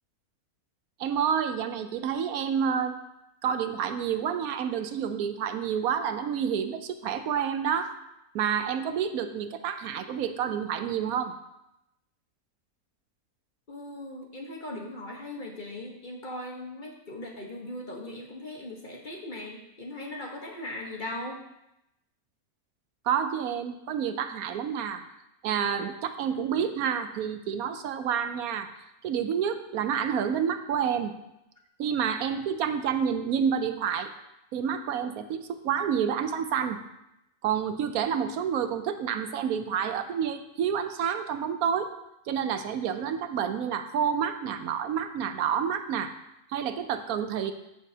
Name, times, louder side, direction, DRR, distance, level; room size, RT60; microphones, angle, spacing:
voice 1, 1.0-3.0 3.4-7.9 8.3-11.3 23.0-25.0 25.4-28.7 29.0-31.1 31.8-34.1 34.5-36.8 37.4-41.9 42.3-46.1 46.5-47.5, right 8 dB, 80° right, 9 dB, 1.1 m, -29 dB
voice 2, 13.7-21.4, left 1 dB, 35° left, 0 dB, 1.2 m, -39 dB
13.5 x 6.3 x 2.8 m, 0.86 s
omnidirectional pair, 1.5 m